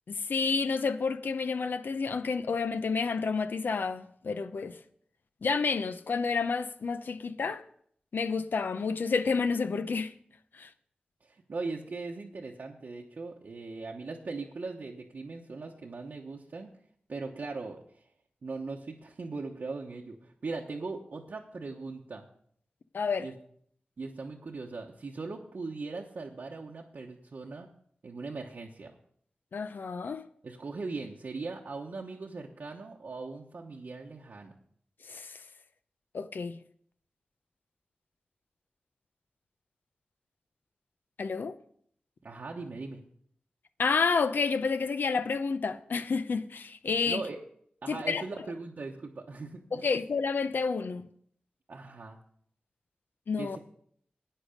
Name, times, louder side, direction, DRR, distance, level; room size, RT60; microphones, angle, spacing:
voice 1, 0.1-4.8 5.4-7.6 8.1-10.1 10.5-10.7 22.9-23.3 29.5-30.2 35.0-35.4 36.1-36.6 41.2-41.6 43.8-47.2 47.9-48.2 49.7-51.1 53.3-53.6, left 5 dB, 75° left, 0.7 m, -30 dB
voice 2, 11.2-16.7 17.1-18.0 18.4-22.2 23.2-23.3 24.0-27.7 28.0-28.9 30.4-34.5 42.2-43.0 47.0-47.4 47.8-49.9 51.7-52.2 53.4-53.6, right 3 dB, 65° right, 1.0 m, -39 dB
10.0 x 9.1 x 5.2 m
wide cardioid pair, 105°, 3 cm